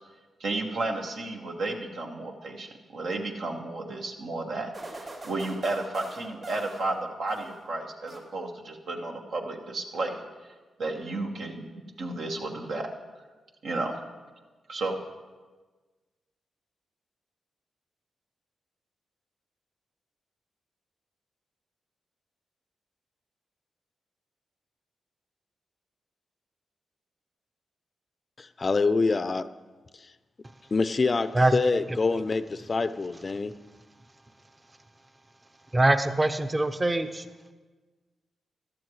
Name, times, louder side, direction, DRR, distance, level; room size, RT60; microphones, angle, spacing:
voice 1, 0.4-10.2 10.8-11.6 12.0-12.9 13.6-14.0 14.7-15.0, right 2 dB, 75° right, 1 dB, 1.3 m, -32 dB
sound 1, 4.7-7.7 8.1-8.7, right 2 dB, 60° right, 3.6 m, -44 dB
voice 2, 28.4-29.5 29.9-30.1 30.7-33.6, left 3 dB, 45° left, 13 dB, 0.5 m, -26 dB
voice 3, 35.7-37.3, right 2 dB, 25° right, 10 dB, 0.7 m, -23 dB
15.5 x 12.0 x 3.1 m, 1.3 s
supercardioid pair, 50°, 0 cm